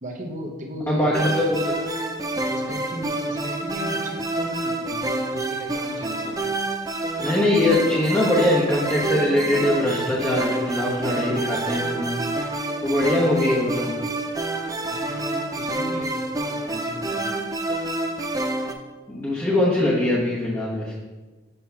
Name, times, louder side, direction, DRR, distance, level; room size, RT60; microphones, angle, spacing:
voice 1, 0.0-1.4 2.5-6.5 14.9-17.6, equal, 40° right, 2 dB, 0.9 m, -36 dB
voice 2, 0.9-1.7 7.2-12.2 12.8-13.9 19.1-21.0, left 1 dB, 15° left, -6 dB, 1.0 m, -22 dB
sound 1, 1.1-18.7, right 2 dB, 20° right, 0.5 m, -28 dB
8.0 x 3.0 x 5.7 m, 1.3 s
head